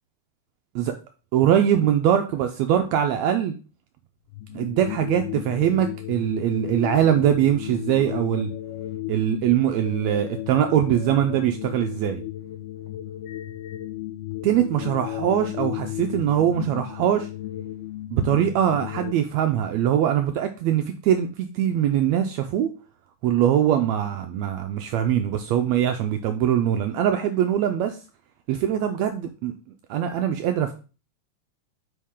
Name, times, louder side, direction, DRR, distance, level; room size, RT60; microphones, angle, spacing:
voice 1, 1.3-3.5 4.5-8.5 9.1-12.2 14.4-17.3 18.1-22.7 23.2-28.0 28.5-29.5 29.9-30.7, right 10 dB, 85° right, 1.5 m, -22 dB
sound 1, 4.3-19.1, left 14 dB, 90° left, 2.2 m, -34 dB
8.5 x 4.2 x 3.6 m
omnidirectional pair, 3.7 m